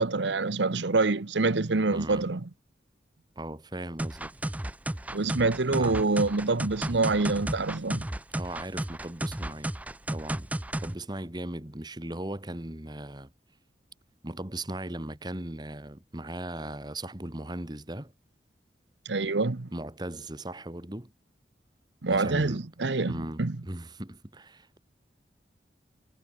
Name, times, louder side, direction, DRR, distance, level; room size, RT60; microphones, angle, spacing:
voice 1, 0.0-2.4 5.1-8.0 19.0-19.7 22.0-23.6, right 3 dB, 90° right, 1.0 m, -26 dB
voice 2, 1.9-2.3 3.3-4.3 5.7-6.0 8.4-9.7 10.1-10.5 10.8-13.3 14.2-18.1 19.7-21.1 22.1-22.6 23.1-24.8, right 1 dB, 25° right, 1.7 m, -38 dB
sound 1, 4.0-10.9, right 1 dB, 10° right, 0.5 m, -33 dB
head